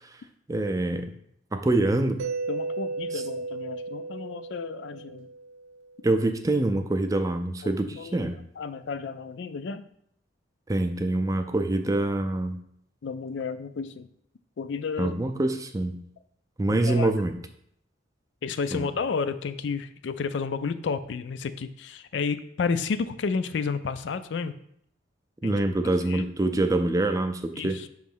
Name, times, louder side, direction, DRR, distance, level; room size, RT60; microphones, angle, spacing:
voice 1, 0.5-1.1 1.5-2.2 6.0-8.4 10.7-12.6 15.0-16.0 16.6-17.4 18.7-18.9 25.4-27.8, right 2 dB, 20° right, 7 dB, 0.4 m, -25 dB
Mallet percussion, 2.2-6.0, right 3 dB, 85° right, 0.5 m, -35 dB
voice 2, 2.5-5.3 7.6-9.9 13.0-14.1 14.6-15.2 16.7-17.1 18.4-24.6 25.4-25.6 26.1-26.3 27.5-27.9, left 5 dB, 70° left, 11 dB, 0.4 m, -31 dB
5.7 x 3.1 x 5.4 m, 0.70 s
head